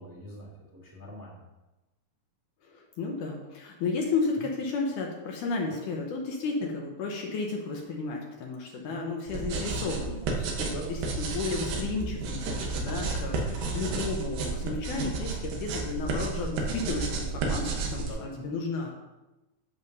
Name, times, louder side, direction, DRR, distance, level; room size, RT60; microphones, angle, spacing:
voice 1, 0.0-1.4 4.3-4.5 5.7-5.8 6.6-6.7 8.9-9.0 10.7-10.9 13.3-13.6 17.9-18.5, right 1 dB, 5° right, -4 dB, 1.6 m, -43 dB
voice 2, 2.6-18.9, left 4 dB, 75° left, 0 dB, 2.2 m, -33 dB
sound 1, 9.3-18.1, right 3 dB, 85° right, 2.9 m, -32 dB
10.5 x 7.4 x 2.7 m, 1.0 s
omnidirectional pair, 4.0 m